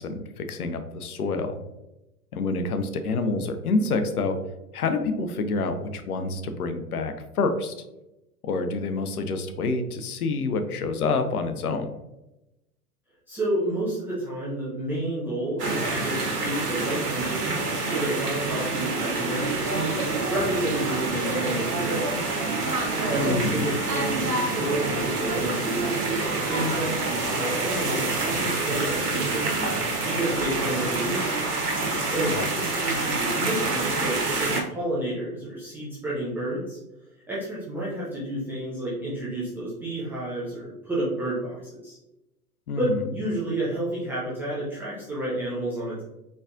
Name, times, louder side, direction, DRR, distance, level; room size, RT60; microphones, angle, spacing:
voice 1, 0.0-1.6 2.3-4.4 4.7-7.7 8.4-11.9 23.2-23.7 32.2-32.4 42.7-43.1, left 3 dB, 70° left, 8 dB, 0.7 m, -27 dB
voice 2, 13.3-22.3 23.1-26.0 26.5-29.7 30.0-31.3 32.1-36.8 37.3-42.0 42.8-46.0, right 1 dB, 5° right, -10 dB, 0.4 m, -30 dB
sound 1, 15.6-34.6, right 3 dB, 85° right, 1.1 m, -27 dB
4.1 x 3.3 x 2.5 m, 0.93 s
figure-of-eight pair, 105°, 46 cm